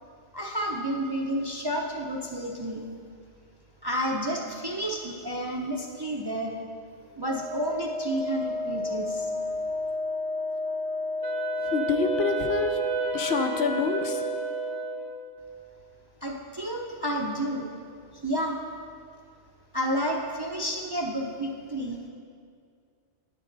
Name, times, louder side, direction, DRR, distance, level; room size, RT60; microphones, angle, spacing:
voice 1, 0.3-2.9 3.8-6.6 7.1-9.3 16.2-17.7 18.1-18.6 19.7-22.0, equal, 30° right, 0 dB, 0.5 m, -30 dB
Wind instrument woodwind instrument, 7.2-15.0, left 2 dB, 90° right, 2.5 m, -32 dB
Wind instrument woodwind instrument 2, 11.2-15.5, right 6 dB, 70° right, 1.0 m, -33 dB
voice 2, 11.7-12.8 13.1-14.2, left 4 dB, 70° left, 6 dB, 0.9 m, -27 dB
10.0 x 8.6 x 3.9 m, 2.2 s
omnidirectional pair, 1.2 m